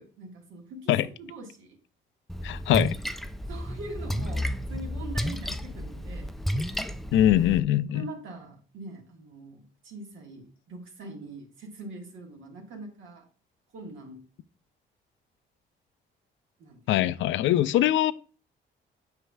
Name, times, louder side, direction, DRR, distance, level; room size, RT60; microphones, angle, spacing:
voice 1, 0.0-1.8 3.5-6.3 7.9-13.3 13.7-14.2 16.6-16.8, right 2 dB, 80° right, 1.7 m, -43 dB
Splash splatter, 2.3-7.6, equal, ahead, 0.3 m, -32 dB
voice 2, 2.4-3.0 7.1-8.1 16.9-18.1, left 12 dB, 75° left, 0.4 m, -22 dB
8.0 x 5.4 x 2.3 m
cardioid pair, 90°, 20 cm